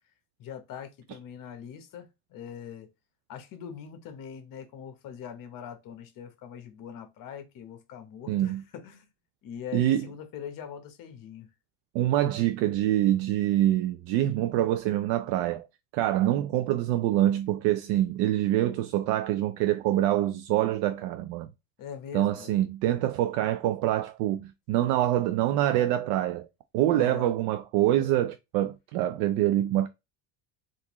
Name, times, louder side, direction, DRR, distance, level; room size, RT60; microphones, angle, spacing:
voice 1, 0.4-2.9 3.3-9.1 9.4-11.5 21.8-22.6 26.9-27.3, left 8 dB, 45° left, 0.9 m, -42 dB
voice 2, 8.3-8.6 9.7-10.1 11.9-15.6 15.9-21.5 22.1-26.5 26.7-29.9, right 13 dB, 70° right, 0.5 m, -25 dB
3.7 x 2.6 x 2.9 m
cardioid pair, 135°, 45 cm